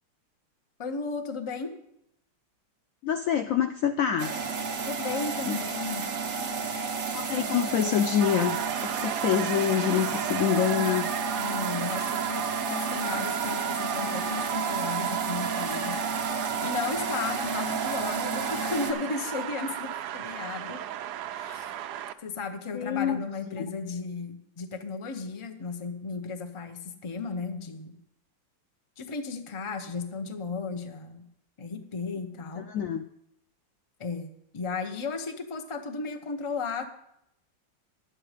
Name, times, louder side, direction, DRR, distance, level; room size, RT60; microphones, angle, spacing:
voice 1, 0.8-1.8 4.9-6.1 11.4-16.0 16.6-20.8 21.4-21.7 22.2-28.0 29.0-31.3 31.6-32.7 34.0-36.9, left 4 dB, 35° left, 6 dB, 0.5 m, -35 dB
voice 2, 3.0-4.4 5.5-5.6 7.1-11.1 22.7-23.2 23.5-23.8 32.6-33.0, left 9 dB, 85° left, 8 dB, 0.7 m, -26 dB
sound 1, 4.2-18.9, right 4 dB, 50° right, 1.3 m, -32 dB
sound 2, 8.2-22.1, right 11 dB, 70° right, 1.0 m, -34 dB
11.0 x 8.8 x 5.0 m, 0.78 s
omnidirectional pair, 2.0 m